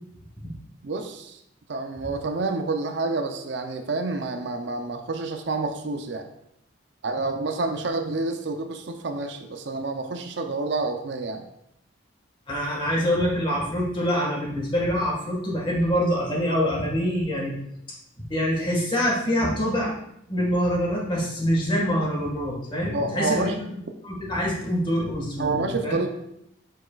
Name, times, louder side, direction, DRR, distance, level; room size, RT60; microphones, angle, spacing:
voice 1, 0.8-1.4 1.7-6.3 7.0-11.5 22.9-23.5 25.4-26.1, right 3 dB, 60° right, 6 dB, 0.6 m, -28 dB
voice 2, 12.5-17.6 18.3-20.0 20.3-23.7 24.0-26.0, equal, 25° left, -3 dB, 1.7 m, -25 dB
7.5 x 5.9 x 2.4 m, 0.78 s
head